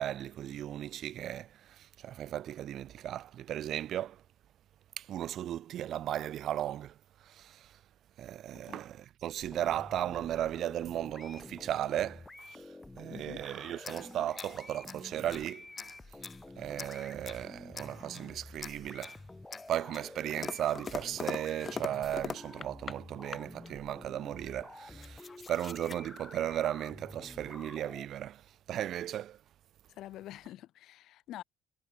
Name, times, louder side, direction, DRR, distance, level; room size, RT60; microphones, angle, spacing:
voice 1, 0.0-4.2 5.0-6.9 7.3-7.7 8.2-12.6 13.0-15.7 16.6-19.2 19.7-28.4 28.7-29.4, right 11 dB, 55° right, 0.4 m, -36 dB
sound 1, 9.4-28.1, left 2 dB, 10° left, 3.4 m, -50 dB
voice 2, 13.1-13.4 30.0-31.4, left 14 dB, 65° left, 1.0 m, -47 dB
sound 2, 13.8-15.5 15.8-16.4 16.8-17.5 17.7-18.3 18.6-19.2 19.5-23.0 23.3-23.7 24.5-24.6 24.8-26.0, left 5 dB, 30° left, 0.6 m, -43 dB
cardioid pair, 120°, 0 cm